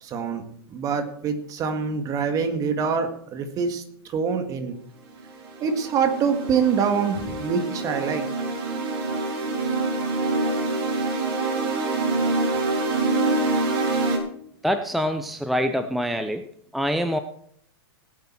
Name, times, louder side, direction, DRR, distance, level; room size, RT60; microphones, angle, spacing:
voice 1, 0.0-0.4 0.7-3.8 4.1-4.8 5.6-8.2 12.6-12.7, right 6 dB, 25° right, 7 dB, 1.8 m, -25 dB
sound 1, 5.1-14.2, right 2 dB, 55° right, 4.0 m, -26 dB
voice 2, 14.6-16.5 16.7-17.2, equal, ahead, 8 dB, 0.5 m, -25 dB
18.5 x 8.4 x 4.5 m, 0.66 s
hypercardioid pair, 145°, 14 cm